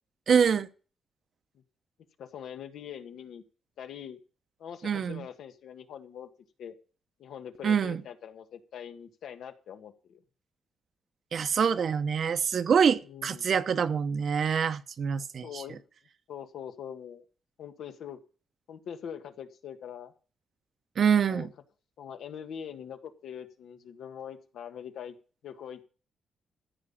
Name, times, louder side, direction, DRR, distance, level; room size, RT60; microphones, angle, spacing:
voice 1, 0.3-0.7 4.8-5.2 7.6-8.0 11.3-15.8 21.0-21.5, right 7 dB, 55° right, 0.9 m, -25 dB
voice 2, 2.2-3.4 3.8-4.2 4.6-6.3 6.6-6.7 7.2-10.2 13.0-13.5 15.4-15.8 16.3-17.2 17.6-18.2 18.7-20.1 21.2-21.5 22.0-25.2 25.4-25.8, left 8 dB, 80° left, 1.6 m, -43 dB
14.0 x 5.6 x 8.7 m
cardioid pair, 125°, 0 cm